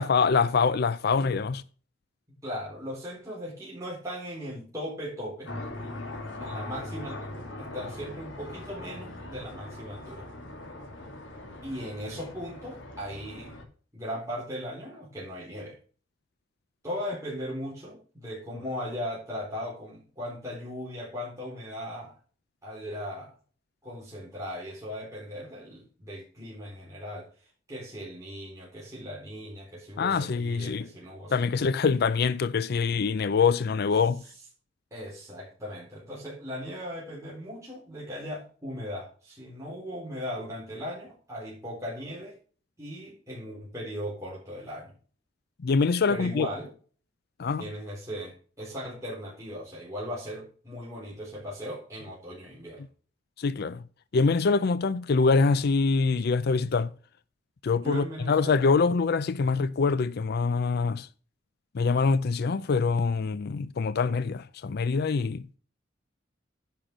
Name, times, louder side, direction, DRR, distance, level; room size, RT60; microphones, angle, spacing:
voice 1, 0.0-1.6 30.0-30.9 31.3-34.2 45.6-46.5 47.4-47.6 53.4-53.8 54.1-56.9 57.6-61.1 61.7-65.5, left 4 dB, 55° left, 0.4 m, -24 dB
voice 2, 2.4-5.5 6.4-10.2 11.6-13.6 13.9-15.8 16.8-22.1 22.6-23.3 23.8-27.3 27.7-31.7 34.9-42.4 42.8-44.9 46.1-46.7 47.6-52.8 57.7-58.6, equal, 15° right, 3.9 m, -38 dB
sound 1, 5.5-13.6, left 2 dB, 85° left, 2.9 m, -41 dB
10.0 x 5.8 x 6.0 m
head